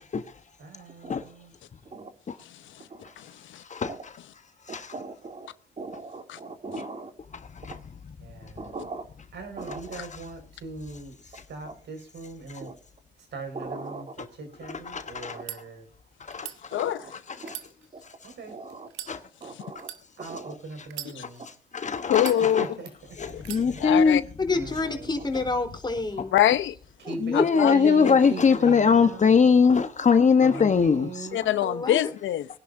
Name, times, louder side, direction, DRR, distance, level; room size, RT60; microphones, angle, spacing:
voice 1, 0.6-1.5 8.2-8.7 9.3-12.7 13.3-15.8 18.2-18.5 20.2-21.4 22.6-23.2 24.5-25.1 27.1-29.7 30.4-31.6, right 3 dB, 65° right, 5.5 m, -40 dB
voice 2, 3.2-3.6 6.3-6.4 16.7-17.1 21.2-21.3 22.1-22.6 23.3-23.4 23.8-24.2 26.3-26.8 27.3-27.7 28.0-28.2 28.7-28.8 31.3-32.5, left 12 dB, 75° left, 0.8 m, -24 dB
voice 3, 4.7-5.5 5.8-7.1 7.7-7.8 8.6-9.0 9.6-10.0 11.6-11.7 12.6-12.7 13.5-14.0 15.3-15.4 16.7-17.1 17.4-17.5 18.5-18.9 19.4-19.9 20.3-20.6 22.1-22.5 23.8-23.9 27.6-27.7, right 3 dB, 35° right, 2.8 m, -39 dB
voice 4, 14.6-15.4 16.3-16.5 17.5-17.6 19.1-19.2 21.7-22.7 23.2-24.2 27.2-31.3, left 5 dB, 35° left, 1.2 m, -21 dB
sound 1, 15.4-15.6 16.3-16.6 17.4-18.3 18.9-19.1 19.8-20.0 20.9-21.5 22.1-22.8 23.4-23.7, right 12 dB, 80° right, 1.7 m, -40 dB
voice 5, 24.4-26.3 27.1-27.4 30.4-30.7 31.6-32.1, left 3 dB, 20° left, 4.0 m, -29 dB
23.0 x 10.5 x 2.7 m
cardioid pair, 90°, 20 cm